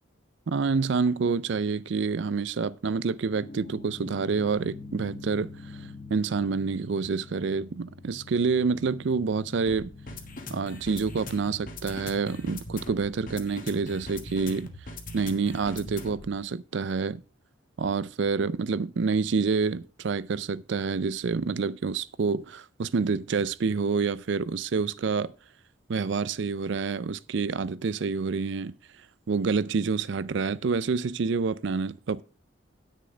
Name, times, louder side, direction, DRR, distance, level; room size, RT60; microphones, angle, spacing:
voice 1, 0.5-5.5 6.1-9.9 10.5-14.7 15.1-17.2 17.8-25.3 25.9-28.8 29.3-32.2, right 5 dB, 60° right, 0.4 m, -27 dB
sound 1, 3.3-16.4, left 2 dB, 40° left, 1.4 m, -42 dB
10.0 x 6.6 x 4.9 m
head